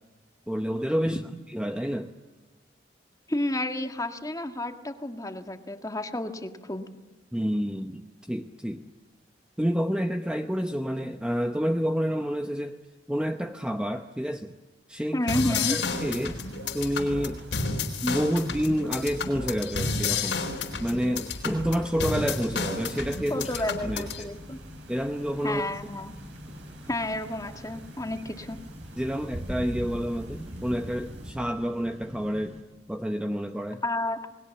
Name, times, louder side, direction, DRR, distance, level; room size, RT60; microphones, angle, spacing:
voice 1, 0.5-1.2 1.5-2.1 7.3-8.8 9.6-12.8 13.1-14.5 14.9-16.4 16.7-17.4 18.0-20.4 20.8-24.3 24.9-25.7 29.0-32.6 32.9-33.8, equal, 5° right, 5 dB, 0.8 m, -29 dB
voice 2, 3.3-6.9 15.1-15.8 23.3-24.6 25.4-26.1 26.9-28.6 33.8-34.3, left 1 dB, 20° left, 6 dB, 1.7 m, -31 dB
sound 1, 15.3-24.2, left 4 dB, 80° left, 4.2 m, -31 dB
sound 2, 15.5-31.3, right 1 dB, 70° right, 5.7 m, -45 dB
sound 3, 21.3-32.6, equal, 35° right, 3.9 m, -48 dB
29.0 x 20.5 x 7.2 m, 1.2 s
head